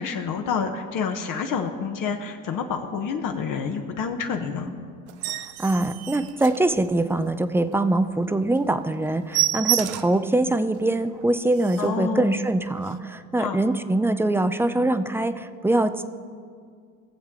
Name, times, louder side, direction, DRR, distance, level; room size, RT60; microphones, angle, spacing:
voice 1, 0.0-4.7 11.8-12.3 13.4-13.6, left 6 dB, 50° left, 4 dB, 1.2 m, -28 dB
sound 1, 5.1-7.2 7.6-7.8 8.1-8.2 8.5-8.7 8.9-10.3 10.7-10.8 11.2-11.3 11.5-12.0 12.8-12.9, right 14 dB, 90° right, 0.7 m, -29 dB
voice 2, 5.3-16.0, right 2 dB, 5° right, 11 dB, 0.4 m, -23 dB
19.5 x 7.2 x 3.7 m, 2.1 s
supercardioid pair, 90°, 41 cm